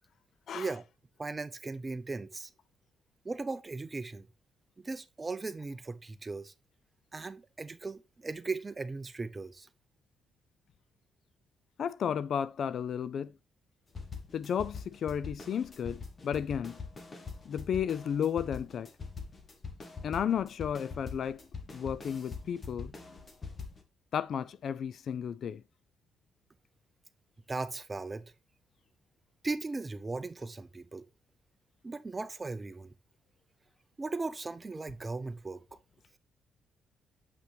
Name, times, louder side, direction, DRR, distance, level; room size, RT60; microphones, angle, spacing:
voice 1, 1.2-2.5 3.2-4.3 4.8-6.5 7.1-9.7 27.5-28.3 29.4-31.0 31.8-32.9 34.0-35.6, right 3 dB, 25° right, 0.6 m, -37 dB
voice 2, 11.8-13.3 14.3-16.8 17.5-18.9 20.0-21.4 21.7-22.9 24.1-25.6, left 8 dB, 60° left, 0.3 m, -33 dB
sound 1, 13.9-23.8, left 5 dB, 35° left, 1.4 m, -43 dB
7.6 x 5.7 x 3.3 m
cardioid pair, 90°, 0 cm